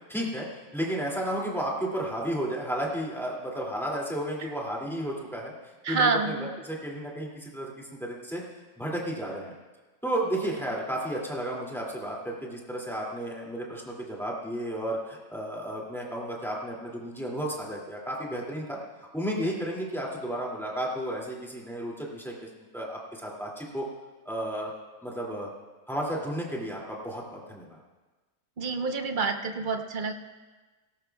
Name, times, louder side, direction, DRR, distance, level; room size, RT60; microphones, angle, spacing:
voice 1, 0.1-0.5 0.7-5.5 5.9-8.4 8.8-9.5 10.0-18.8 19.1-23.8 24.2-24.7 25.0-25.5 25.9-27.8, right 1 dB, ahead, -3 dB, 2.3 m, -33 dB
voice 2, 5.8-6.5 28.6-30.1, right 4 dB, 45° right, 6 dB, 0.8 m, -27 dB
18.0 x 17.0 x 2.3 m, 1.3 s
omnidirectional pair, 1.5 m